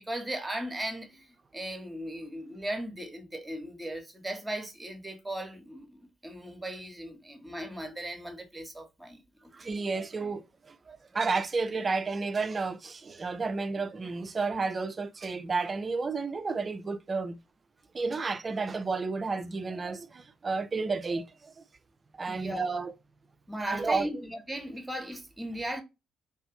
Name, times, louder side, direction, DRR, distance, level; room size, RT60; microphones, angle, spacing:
voice 1, 0.0-9.7 22.3-22.9 23.5-25.8, right 1 dB, 10° right, 0.8 m, -37 dB
voice 2, 9.5-17.4 17.9-21.6 22.1-22.9 23.7-24.1, right 4 dB, 35° right, 0.3 m, -32 dB
2.5 x 2.3 x 2.4 m
figure-of-eight pair, 45°, 0 cm